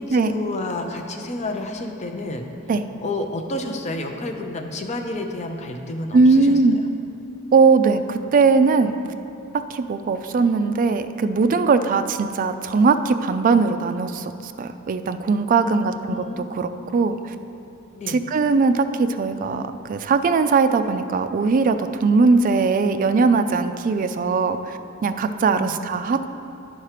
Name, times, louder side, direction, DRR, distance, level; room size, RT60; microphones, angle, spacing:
voice 1, 0.0-2.5 3.0-6.9 15.6-16.5 17.9-18.2 25.5-25.7, left 2 dB, 35° left, 4 dB, 0.6 m, -30 dB
voice 2, 6.1-6.8 7.5-8.9 9.7-17.3 18.1-26.3, right 4 dB, 40° right, 9 dB, 0.3 m, -20 dB
10.5 x 4.4 x 4.9 m, 2.7 s
head